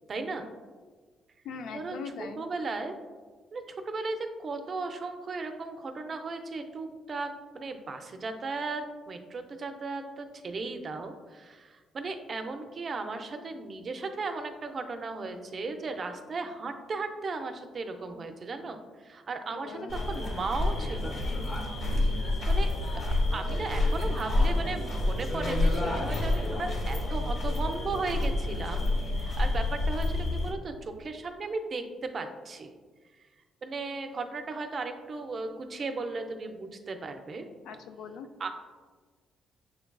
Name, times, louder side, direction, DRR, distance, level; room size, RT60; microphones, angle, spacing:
voice 1, 0.1-0.5 1.7-2.0 2.4-2.9 3.5-21.2 22.5-22.7 23.0-28.9 29.2-32.7 33.6-37.5 38.4-38.5, right 3 dB, 45° right, 6 dB, 0.4 m, -36 dB
voice 2, 1.4-2.4 19.5-19.9 37.7-38.3, left 5 dB, 80° left, 7 dB, 0.3 m, -41 dB
sound 1, 19.9-30.5, left 2 dB, 55° left, 1.0 m, -28 dB
6.6 x 2.3 x 2.2 m, 1.4 s
cardioid pair, 90°, 0 cm